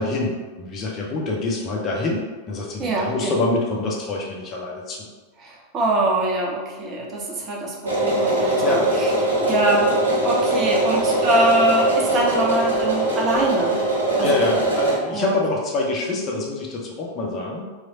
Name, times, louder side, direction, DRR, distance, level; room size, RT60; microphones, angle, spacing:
voice 1, 0.0-5.1 8.6-8.8 14.2-17.7, left 2 dB, 30° left, -2 dB, 0.8 m, -25 dB
voice 2, 2.8-3.4 5.4-9.1 9.4-13.8 14.2-14.4 15.1-15.4, right 1 dB, 30° right, -2 dB, 0.6 m, -23 dB
sound 1, 7.8-15.0, right 1 dB, 75° right, 1.0 m, -21 dB
3.2 x 2.5 x 3.9 m, 1.3 s
figure-of-eight pair, 90°, 0 cm